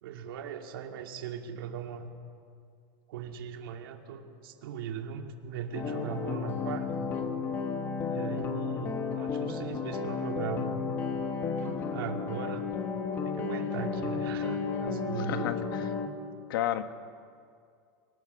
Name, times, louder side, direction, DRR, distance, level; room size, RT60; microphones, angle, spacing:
voice 1, 0.0-2.1 3.1-7.1 8.0-10.8 11.9-12.7 13.2-15.7, right 7 dB, 70° right, 3 dB, 2.5 m, -39 dB
sound 1, 5.7-16.1, left 5 dB, 20° left, 1.4 m, -33 dB
voice 2, 15.3-15.6 16.5-16.8, left 12 dB, 70° left, 9 dB, 1.3 m, -30 dB
23.5 x 19.0 x 6.9 m, 2.3 s
supercardioid pair, 180°, 12 cm